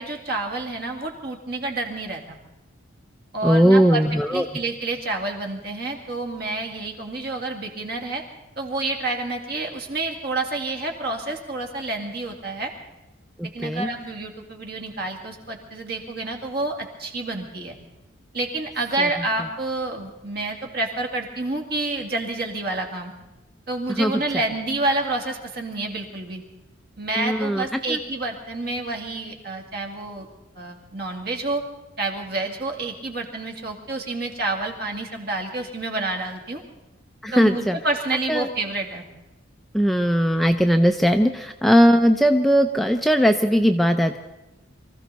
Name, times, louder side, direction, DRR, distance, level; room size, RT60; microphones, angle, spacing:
voice 1, 0.0-2.4 3.3-8.2 8.6-12.7 13.5-17.8 18.3-23.1 23.7-26.4 27.0-30.3 30.6-31.6 32.0-36.6 37.3-39.0, right 2 dB, 50° right, 2 dB, 2.3 m, -29 dB
voice 2, 3.4-4.4 13.4-13.9 24.0-24.1 27.2-27.6 27.9-28.0 37.2-37.8 38.3-38.5 39.7-44.2, equal, ahead, 5 dB, 0.5 m, -19 dB
24.0 x 15.0 x 4.1 m, 1.0 s
head